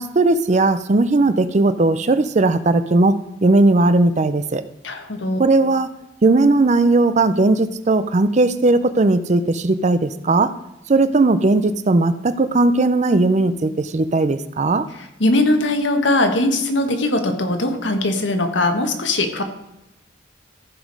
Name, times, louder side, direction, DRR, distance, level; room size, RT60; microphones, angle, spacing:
voice 1, 0.0-4.6 5.4-5.9 6.2-10.5 10.9-14.8, right 2 dB, 35° right, 13 dB, 0.5 m, -17 dB
voice 2, 4.8-5.4 14.9-19.4, left 2 dB, 70° left, 6 dB, 1.4 m, -20 dB
14.5 x 5.1 x 5.3 m, 0.88 s
head